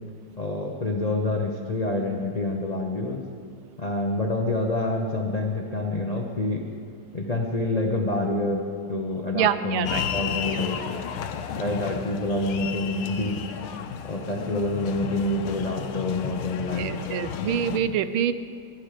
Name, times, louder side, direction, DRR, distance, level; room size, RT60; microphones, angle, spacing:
voice 1, 0.4-3.2 3.8-6.7 7.1-10.8 11.6-13.4 14.0-16.9, left 2 dB, 65° left, 1 dB, 0.4 m, -27 dB
voice 2, 9.3-10.0 16.8-18.3, right 9 dB, 75° right, 12 dB, 1.5 m, -25 dB
sound 1, 9.8-17.8, left 7 dB, 90° left, 1.7 m, -33 dB
22.5 x 10.5 x 5.0 m, 2.3 s
omnidirectional pair, 2.4 m